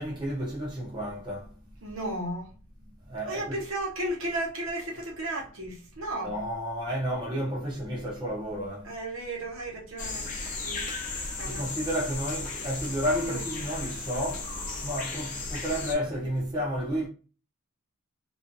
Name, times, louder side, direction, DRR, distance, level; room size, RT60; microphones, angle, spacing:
voice 1, 0.0-1.5 3.1-3.6 6.2-8.9 11.4-14.5 14.8-17.1, equal, 20° right, 0.5 m, -31 dB
voice 2, 1.8-2.5 3.2-6.3 8.8-10.3 10.6-10.9 11.3-11.6 13.3-13.4, right 1 dB, 65° right, 0.8 m, -34 dB
sound 1, 10.0-15.9, left 3 dB, 35° left, 0.5 m, -35 dB
2.3 x 2.3 x 2.6 m
head